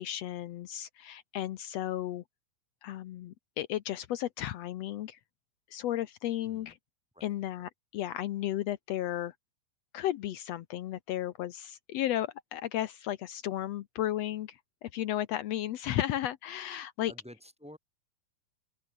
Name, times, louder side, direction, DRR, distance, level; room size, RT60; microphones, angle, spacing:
voice 1, 0.0-2.2 2.8-5.2 5.7-6.8 7.2-9.3 9.9-17.1, left 13 dB, 90° left, 1.4 m, -34 dB
voice 2, 6.4-6.8 7.1-7.3 17.1-17.8, equal, ahead, 3.7 m, -51 dB
open air
omnidirectional pair, 4.1 m